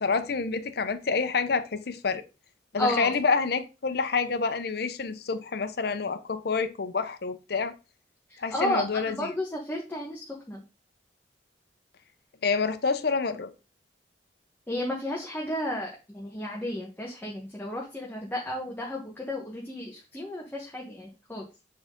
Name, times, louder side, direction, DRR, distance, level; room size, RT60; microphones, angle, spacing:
voice 1, 0.0-2.2 2.7-7.7 8.4-9.3 12.4-13.5, left 4 dB, 65° left, 0.7 m, -28 dB
voice 2, 2.8-3.1 8.3-10.6 14.7-21.4, left 1 dB, 10° left, 1.1 m, -32 dB
7.3 x 3.8 x 3.7 m
head